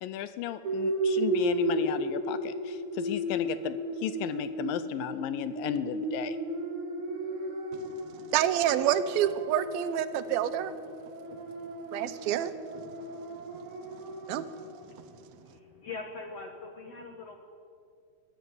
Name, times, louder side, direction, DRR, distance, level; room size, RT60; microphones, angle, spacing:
voice 1, 0.0-6.4, left 10 dB, 80° left, 13 dB, 2.1 m, -34 dB
sound 1, 0.6-14.8, right 1 dB, 50° right, 3.8 m, -34 dB
voice 2, 8.3-10.7 11.9-12.8 14.3-14.4, right 11 dB, 75° right, 13 dB, 2.4 m, -28 dB
voice 3, 14.8-17.4, left 3 dB, 55° left, 4 dB, 1.8 m, -43 dB
21.0 x 15.5 x 9.4 m, 2.4 s
omnidirectional pair, 4.6 m